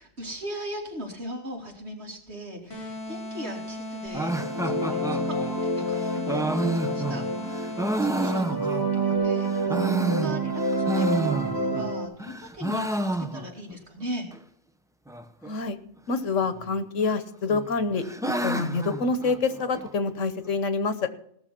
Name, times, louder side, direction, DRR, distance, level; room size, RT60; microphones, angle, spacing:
voice 1, 0.0-7.2 7.7-7.9 8.1-14.3, equal, 60° right, 0 dB, 3.3 m, -39 dB
sound 1, 2.7-8.7, equal, 60° left, 4.3 m, -37 dB
sound 2, 4.1-12.1, right 2 dB, 15° left, 3.9 m, -28 dB
sound 3, 4.1-9.1 9.5-11.9 12.2-13.7 14.0-14.1 14.3-14.4 15.1-15.5 16.5-17.1 17.5-19.9, right 2 dB, 5° right, 0.4 m, -30 dB
voice 2, 15.4-15.8 16.1-18.0 18.4-21.1, left 4 dB, 90° left, 11 dB, 1.5 m, -26 dB
18.0 x 6.8 x 6.0 m, 0.69 s
omnidirectional pair, 1.3 m